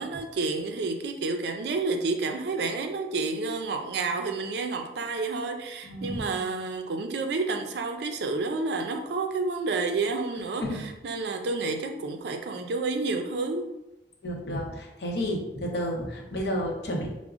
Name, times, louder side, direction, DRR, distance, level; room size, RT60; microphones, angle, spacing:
voice 1, 0.0-13.7, right 3 dB, 70° right, 5 dB, 0.4 m, -30 dB
voice 2, 5.8-6.4 10.6-10.8 14.2-17.1, equal, 70° left, 0 dB, 0.7 m, -31 dB
4.8 x 2.0 x 2.4 m, 0.94 s
head